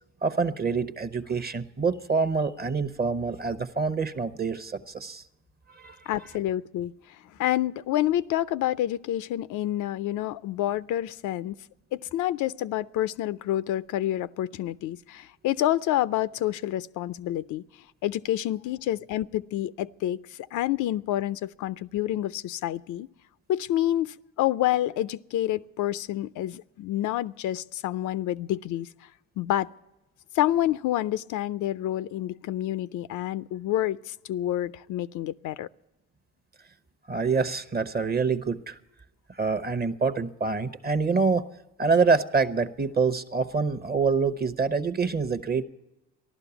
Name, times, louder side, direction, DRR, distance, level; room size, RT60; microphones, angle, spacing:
voice 1, 0.2-5.2 5.7-6.0 37.1-38.8 39.3-41.4 41.8-45.6, right 4 dB, 30° right, 0.8 m, -26 dB
voice 2, 6.1-11.6 11.9-17.6 18.0-23.1 23.5-28.9 29.4-29.7 30.3-35.7, left 13 dB, 75° left, 0.5 m, -28 dB
14.5 x 11.5 x 7.0 m
cardioid pair, 90°, 30 cm